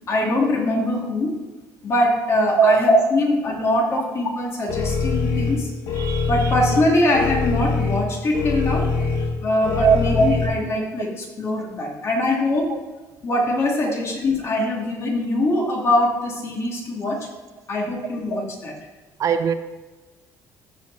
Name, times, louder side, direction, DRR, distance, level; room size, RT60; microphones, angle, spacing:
voice 1, 0.1-1.3 1.8-5.7 6.3-8.9 9.4-12.8 13.2-17.3 17.7-18.7, left 1 dB, 40° left, 2.2 m, -22 dB
sound 1, 4.7-10.5, left 3 dB, 90° left, 1.5 m, -24 dB
voice 2, 6.0-6.3 9.8-10.0 12.7-12.8 13.9-14.0 19.2-19.5, right 8 dB, 50° right, 0.5 m, -19 dB
13.5 x 5.4 x 3.9 m
cardioid pair, 135°, 7 cm